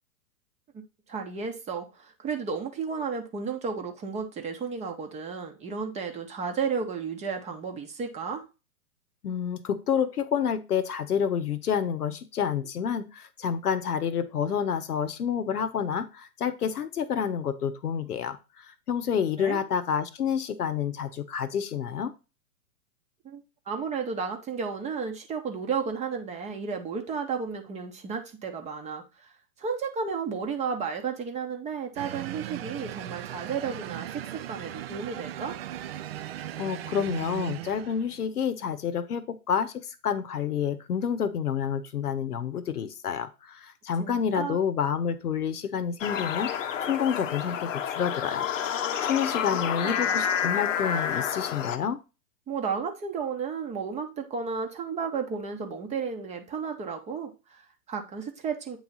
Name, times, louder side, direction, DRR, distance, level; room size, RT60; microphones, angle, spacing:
voice 1, 1.1-8.4 19.4-19.6 23.2-29.3 29.6-35.6 44.0-44.6 49.8-50.2 52.5-58.8, right 5 dB, 15° right, 0.8 m, -33 dB
voice 2, 9.2-18.4 18.9-22.1 36.6-46.5 46.9-48.5 49.0-52.0, left 7 dB, 80° left, 1.0 m, -29 dB
sound 1, 32.0-38.3, right 13 dB, 45° right, 0.4 m, -38 dB
sound 2, 46.0-51.8, left 8 dB, 55° left, 0.8 m, -29 dB
8.4 x 3.2 x 4.0 m
hypercardioid pair, 120°, 45 cm